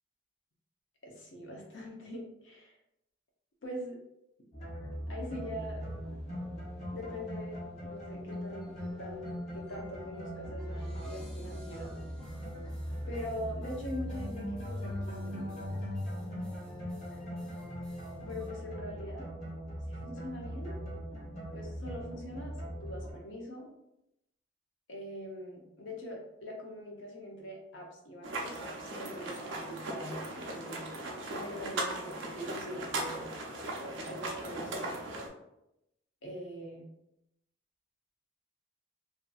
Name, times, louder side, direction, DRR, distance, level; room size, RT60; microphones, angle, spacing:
voice 1, 1.0-2.7 3.6-4.0 5.1-5.9 6.9-11.9 13.1-15.8 18.3-19.3 19.9-20.8 21.5-23.7 24.9-30.8 31.3-33.3 34.0-35.0 36.2-36.8, equal, 80° left, 0 dB, 0.7 m, -43 dB
sound 1, 4.5-23.1, equal, 35° left, 0.7 m, -40 dB
sound 2, 5.3-18.5, equal, 5° left, 0.5 m, -54 dB
sound 3, 28.2-35.3, right 2 dB, 75° right, 0.5 m, -38 dB
2.6 x 2.5 x 2.3 m, 0.85 s
head